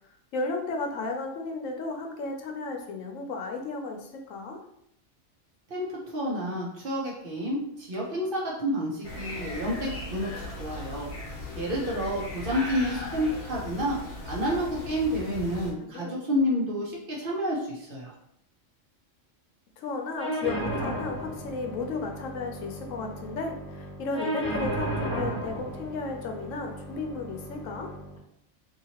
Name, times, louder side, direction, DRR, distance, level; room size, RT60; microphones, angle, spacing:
voice 1, 0.3-4.6 15.9-16.2 19.8-27.9, left 3 dB, 80° left, 3 dB, 1.0 m, -34 dB
voice 2, 6.1-14.0 14.3-18.1, equal, 50° right, -4 dB, 0.8 m, -29 dB
sound 1, 9.0-15.7, left 1 dB, 55° left, 1.0 m, -38 dB
sound 2, 20.2-28.2, right 1 dB, 5° left, 0.7 m, -34 dB
2.8 x 2.8 x 2.8 m, 0.73 s
omnidirectional pair, 1.3 m